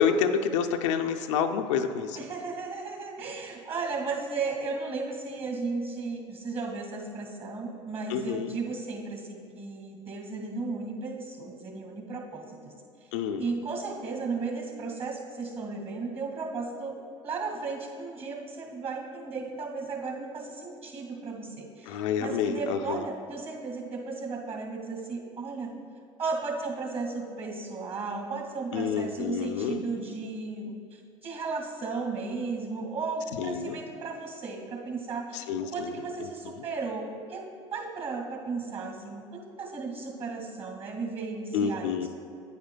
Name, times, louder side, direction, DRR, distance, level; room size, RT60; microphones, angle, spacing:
voice 1, 0.0-2.2 8.1-8.5 13.1-13.5 21.9-23.0 28.7-29.8 33.4-33.8 35.3-36.0 41.5-42.1, left 7 dB, 75° left, 5 dB, 0.5 m, -28 dB
voice 2, 2.2-12.7 13.4-16.9 17.2-25.7 26.2-37.0 37.3-37.4 37.7-42.1, right 4 dB, 40° right, 2 dB, 1.9 m, -35 dB
9.5 x 8.6 x 2.2 m, 2.4 s
hypercardioid pair, 75°, 16 cm